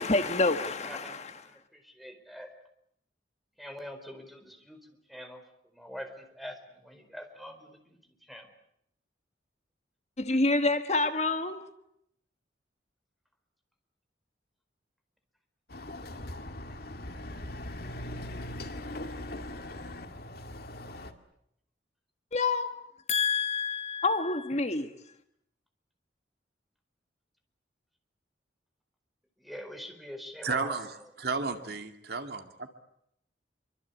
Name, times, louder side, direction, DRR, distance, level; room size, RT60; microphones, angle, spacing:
voice 1, 0.0-1.3 10.2-11.7 22.3-22.8 23.1-24.9, left 3 dB, 35° left, 1.5 m, -27 dB
voice 2, 0.8-2.5 3.6-4.8 5.1-5.4 5.7-8.0 8.3-8.5 29.4-30.8, equal, ahead, 4.4 m, -44 dB
Chatter / Car passing by / Motorcycle, 15.7-21.1, left 1 dB, 55° left, 2.3 m, -40 dB
voice 3, 30.4-32.7, right 4 dB, 60° right, 2.3 m, -33 dB
27.5 x 24.5 x 8.4 m
head